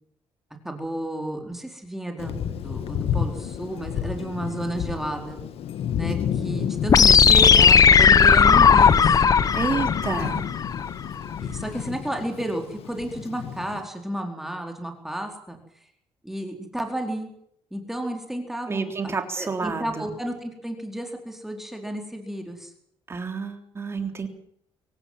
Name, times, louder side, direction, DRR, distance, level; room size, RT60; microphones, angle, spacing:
voice 1, 0.6-2.4 2.6-5.4 5.9-9.1 10.2-10.3 11.4-15.6 16.2-17.3 17.7-22.7, right 1 dB, 5° right, 3 dB, 4.5 m, -32 dB
Thunder, 2.2-13.8, left 8 dB, 70° left, 1.7 m, -31 dB
sound 1, 6.9-10.9, left 6 dB, 35° left, 1.0 m, -16 dB
voice 2, 9.5-10.4 18.7-20.1 23.1-24.3, right 4 dB, 25° right, 5 dB, 3.5 m, -29 dB
24.5 x 18.0 x 7.7 m, 0.70 s
cardioid pair, 150°, 10 cm